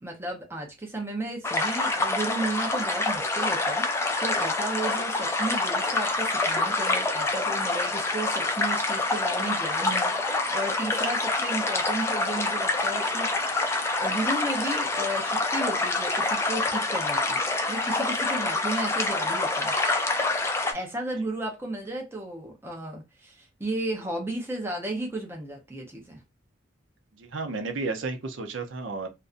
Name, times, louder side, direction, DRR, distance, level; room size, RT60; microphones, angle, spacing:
voice 1, 0.0-13.3 14.0-17.4 17.7-20.0 20.7-26.2, right 1 dB, 10° right, 0.7 m, -34 dB
sound 1, 1.4-20.7, left 2 dB, 15° left, 0.3 m, -26 dB
voice 2, 27.2-29.1, right 3 dB, 75° right, 0.6 m, -32 dB
2.5 x 2.2 x 2.5 m
head